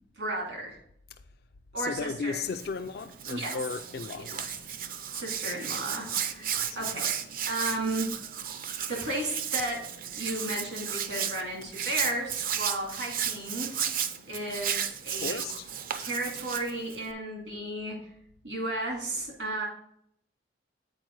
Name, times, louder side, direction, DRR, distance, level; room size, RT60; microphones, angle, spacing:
voice 1, 0.2-0.8 1.7-2.4 3.3-3.6 4.1-4.2 5.1-7.1 7.5-8.1 8.8-9.8 10.2-13.8 14.3-15.4 16.0-18.0 18.4-19.6, right 1 dB, 80° right, 2.7 m, -34 dB
voice 2, 1.8-4.5 6.6-6.8 15.2-15.7, left 5 dB, 55° left, 0.4 m, -35 dB
Hands, 2.5-17.1, right 8 dB, 50° right, 0.5 m, -34 dB
7.7 x 4.6 x 4.6 m
head